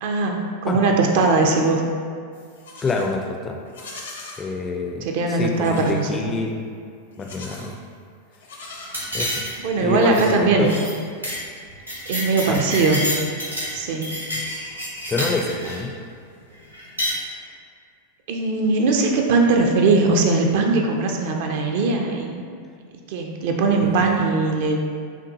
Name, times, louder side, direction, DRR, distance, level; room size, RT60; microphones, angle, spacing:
voice 1, 0.0-1.8 5.0-6.3 9.6-10.7 12.1-13.1 13.7-14.2 18.3-22.4 23.1-24.8, right 3 dB, 50° right, 2 dB, 0.4 m, -20 dB
Livestock farm animals working animals, 2.3-3.1 3.6-4.4 5.5-6.0 7.1-7.8 8.3-9.4, left 2 dB, 65° left, 0.6 m, -40 dB
voice 2, 2.8-3.6 4.4-6.7 7.2-7.8 9.1-9.4 9.8-10.7 12.5-12.6 15.1-16.0 23.8-24.1, left 3 dB, 20° left, 2 dB, 0.4 m, -26 dB
sound 1, 8.9-9.7 10.0-10.3 10.6-10.9 11.2-11.4 11.7-13.7 14.0-15.8 16.7-17.2, equal, 85° right, 0.8 m, -28 dB
5.8 x 2.2 x 2.7 m, 2.2 s
figure-of-eight pair, 90°, 0 cm